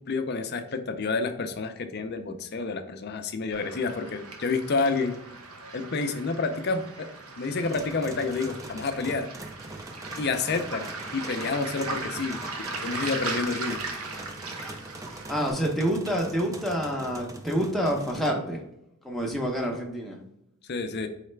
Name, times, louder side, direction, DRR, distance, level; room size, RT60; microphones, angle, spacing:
voice 1, 0.1-5.1 5.7-7.1 7.4-9.3 10.2-12.4 12.8-13.8 20.7-21.1, left 4 dB, 45° left, 7 dB, 0.5 m, -29 dB
Waves surf, 3.5-15.5, right 3 dB, 80° right, 0.8 m, -38 dB
sound 1, 7.6-18.3, right 2 dB, 15° right, 0.3 m, -43 dB
voice 2, 15.3-18.6 19.0-20.2, equal, ahead, -1 dB, 0.7 m, -27 dB
4.8 x 3.2 x 3.2 m, 0.81 s
head